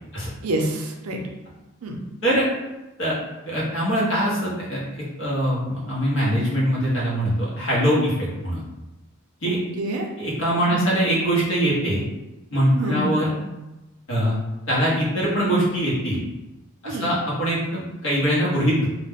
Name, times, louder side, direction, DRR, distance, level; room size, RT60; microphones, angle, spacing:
voice 1, 0.4-1.2 1.8-2.0 9.8-10.1 10.7-11.0 12.8-13.1 16.8-17.1, right 1 dB, 90° right, 1 dB, 0.5 m, -27 dB
voice 2, 3.5-4.8 5.2-8.1 8.4-8.6 9.4-9.6 10.2-12.0 12.5-13.3 14.1-14.4 14.7-16.2 16.8-18.9, equal, 60° left, -6 dB, 0.9 m, -22 dB
2.3 x 2.1 x 3.4 m, 1.0 s
head